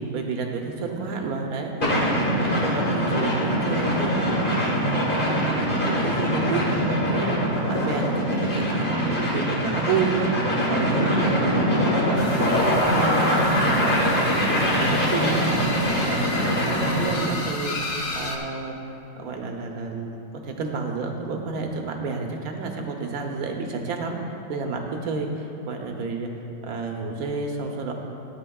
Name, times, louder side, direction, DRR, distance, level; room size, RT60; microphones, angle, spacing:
voice 1, 0.1-1.9 2.2-4.1 4.5-7.4 7.7-11.6 11.9-12.5 13.0-14.1 14.5-15.7 16.0-17.8 18.1-18.8 19.2-20.2 20.4-24.2 24.5-26.3 26.6-27.9, right 4 dB, 85° right, 2 dB, 1.4 m, -30 dB
sound 1, 1.8-17.2, equal, 35° left, 1.7 m, -23 dB
sound 2, 12.2-18.4, left 3 dB, 55° left, 1.0 m, -33 dB
13.5 x 8.8 x 2.3 m, 2.7 s
omnidirectional pair, 1.5 m